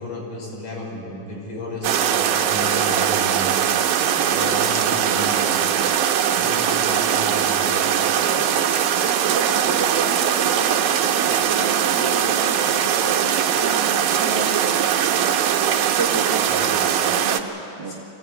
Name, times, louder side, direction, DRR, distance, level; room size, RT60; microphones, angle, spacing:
voice 1, 0.0-3.5 4.2-5.5 6.4-7.7 14.2-14.3 16.5-16.7 17.8-17.9, left 1 dB, 70° left, -3 dB, 7.0 m, -33 dB
sound 1, 1.8-17.4, right 9 dB, 85° right, 2.6 m, -20 dB
voice 2, 3.9-4.6 8.2-8.8 9.0-15.0 15.9-16.5 17.2-17.9, right 4 dB, 50° right, 0 dB, 1.3 m, -32 dB
23.5 x 16.5 x 9.8 m, 2.8 s
omnidirectional pair, 3.8 m